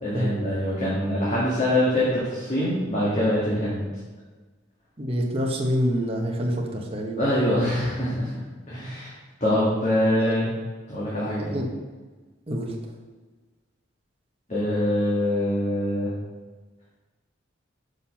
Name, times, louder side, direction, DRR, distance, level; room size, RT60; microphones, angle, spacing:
voice 1, 0.0-3.8 7.2-8.3 8.7-9.1 9.4-10.5 10.9-11.6 14.5-16.1, left 1 dB, 35° left, -8 dB, 1.9 m, -24 dB
voice 2, 5.0-7.2 10.2-10.3 11.4-11.7 12.5-12.7, equal, 30° right, 0 dB, 1.0 m, -26 dB
6.6 x 5.8 x 5.7 m, 1.3 s
head